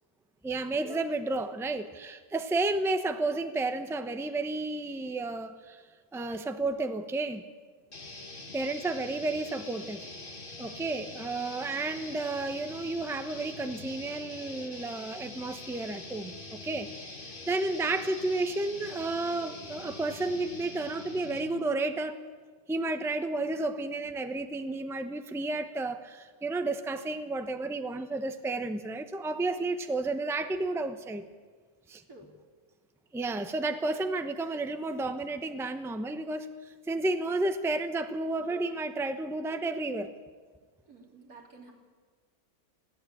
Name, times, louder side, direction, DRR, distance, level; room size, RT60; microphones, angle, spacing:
voice 1, 0.4-5.8 6.1-7.4 8.5-10.0 10.6-22.2 22.7-31.2 31.9-32.0 33.1-40.1, right 2 dB, ahead, 8 dB, 0.9 m, -32 dB
sound 1, 7.9-21.6, left 2 dB, 35° left, 1.9 m, -44 dB
voice 2, 40.9-41.7, right 3 dB, 85° right, 0 dB, 3.9 m, -52 dB
21.0 x 16.0 x 8.7 m, 1.5 s
omnidirectional pair, 1.5 m